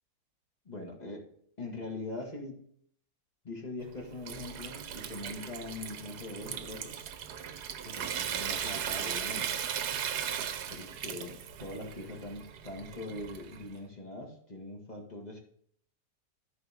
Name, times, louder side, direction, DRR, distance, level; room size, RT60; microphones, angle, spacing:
voice 1, 0.7-1.3 1.6-2.6 3.4-7.0 7.8-9.6 10.7-15.4, left 2 dB, 25° left, 0 dB, 1.8 m, -42 dB
Water tap faucet / Sink (filling or washing) / Trickle dribble, 3.8-13.7, right 9 dB, 80° right, 1.3 m, -37 dB
14.0 x 4.7 x 3.5 m, 0.63 s
omnidirectional pair, 1.7 m